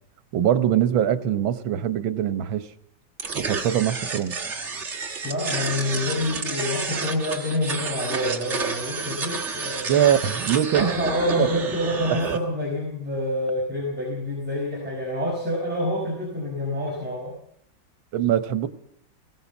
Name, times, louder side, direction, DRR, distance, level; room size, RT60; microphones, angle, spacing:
voice 1, 0.3-2.7 3.3-4.4 9.9-10.9 11.4-11.5 12.2-12.4 18.1-18.7, right 10 dB, 85° right, 12 dB, 1.8 m, -22 dB
sound 1, 3.2-12.4, right 4 dB, 35° right, 1.9 m, -30 dB
voice 2, 5.2-9.9 10.7-17.4, left 1 dB, 5° right, -4 dB, 5.2 m, -27 dB
21.0 x 17.0 x 7.2 m, 0.71 s
omnidirectional pair, 2.1 m